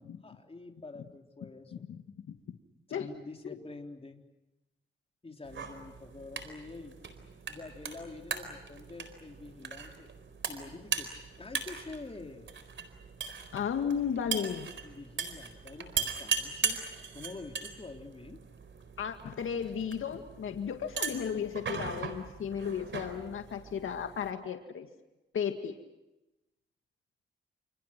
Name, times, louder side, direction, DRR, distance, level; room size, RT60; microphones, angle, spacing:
voice 1, 0.0-1.9 2.9-4.2 5.2-7.0 7.5-10.1 10.4-11.1 11.4-12.5 14.6-16.8 17.1-18.4, left 3 dB, 30° left, 3 dB, 3.7 m, -47 dB
voice 2, 1.7-2.0 2.9-3.1 3.4-3.6 13.5-14.7 19.0-24.9 25.3-25.7, left 7 dB, 85° left, 6 dB, 2.1 m, -34 dB
sound 1, 5.4-24.3, right 6 dB, 65° right, 4.3 m, -39 dB
29.5 x 28.5 x 6.0 m, 0.99 s
cardioid pair, 75°, 20 cm